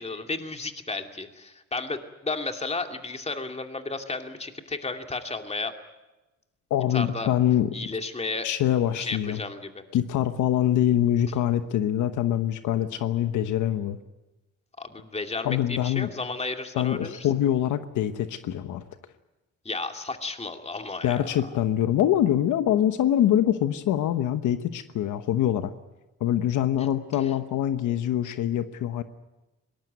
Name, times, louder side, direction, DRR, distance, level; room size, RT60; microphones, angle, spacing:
voice 1, 0.0-5.7 6.9-7.3 7.7-8.5 9.0-9.8 14.8-17.3 19.6-21.3 26.8-26.9, left 3 dB, 20° left, 5 dB, 2.5 m, -33 dB
voice 2, 6.7-7.7 8.4-9.4 9.9-14.0 15.4-16.1 16.7-18.8 21.0-25.7 26.2-29.0, left 11 dB, 80° left, 10 dB, 1.1 m, -24 dB
22.0 x 19.0 x 9.3 m, 1.1 s
cardioid pair, 90°, 30 cm